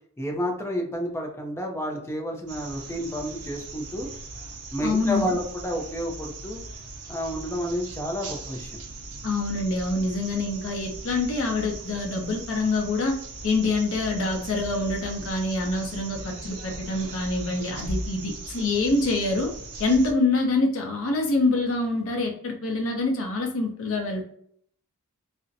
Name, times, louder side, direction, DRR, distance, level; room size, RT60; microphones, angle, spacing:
voice 1, 0.2-4.1 4.7-6.6 7.1-8.8, equal, 10° left, 1 dB, 0.4 m, -30 dB
sound 1, 2.5-20.1, right 2 dB, 85° right, 0.6 m, -39 dB
voice 2, 4.8-5.4 9.2-13.2 13.4-19.5 19.8-24.2, left 2 dB, 65° left, 1 dB, 0.7 m, -25 dB
2.5 x 2.1 x 2.5 m, 0.64 s
head